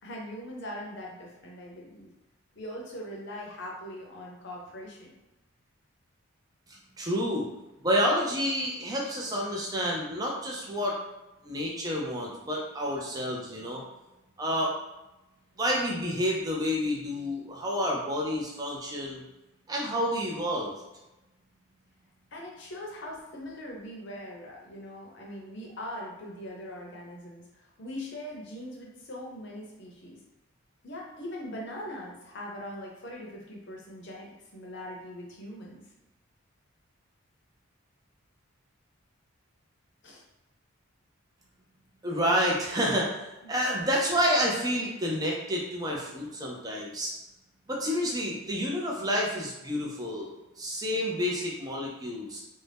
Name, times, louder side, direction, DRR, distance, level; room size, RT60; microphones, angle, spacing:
voice 1, 0.0-2.1 2.5-5.2 22.3-30.2 30.8-35.8 40.0-40.2, left 1 dB, 55° left, -2 dB, 0.7 m, -41 dB
voice 2, 6.7-7.5 7.8-10.9 11.4-13.8 14.4-14.7 15.6-19.2 19.7-20.7 42.0-47.1 47.7-50.3 50.6-52.4, equal, 15° right, -2 dB, 0.4 m, -29 dB
2.6 x 2.1 x 3.3 m, 1.0 s
head